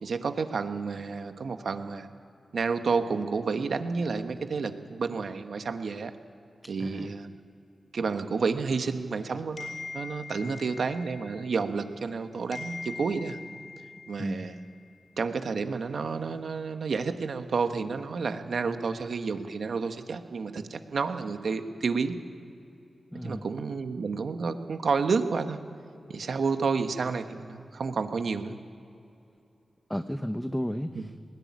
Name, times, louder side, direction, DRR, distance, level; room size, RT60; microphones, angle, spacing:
voice 1, 0.0-2.1 2.5-6.1 6.7-7.4 7.9-13.4 14.1-14.6 15.2-22.2 23.1-25.6 26.1-28.6 30.9-31.1, right 4 dB, 75° right, 8 dB, 1.4 m, -30 dB
voice 2, 6.8-7.1 10.4-10.6 14.2-14.4 23.1-23.5 29.9-31.2, equal, 5° left, 8 dB, 1.0 m, -33 dB
sound 1, 9.6-12.2 12.5-15.1, left 4 dB, 65° left, 4.8 m, -43 dB
20.0 x 14.0 x 9.7 m, 2.6 s
cardioid pair, 50°, 0 cm